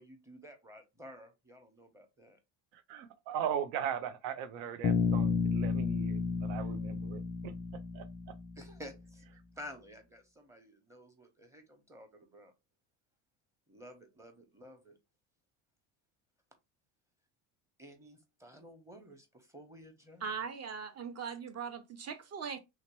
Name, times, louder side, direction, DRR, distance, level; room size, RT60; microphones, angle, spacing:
voice 1, 0.0-2.4 8.6-9.2 9.6-12.5 13.7-15.0 17.8-20.2, equal, 5° right, 0.9 m, -52 dB
voice 2, 2.7-7.5 7.9-8.0, right 8 dB, 70° right, 0.7 m, -38 dB
Bass guitar, 4.8-8.7, left 5 dB, 45° left, 0.4 m, -32 dB
voice 3, 20.2-22.6, right 6 dB, 35° right, 0.7 m, -40 dB
3.1 x 2.8 x 3.0 m
supercardioid pair, 105°, 47 cm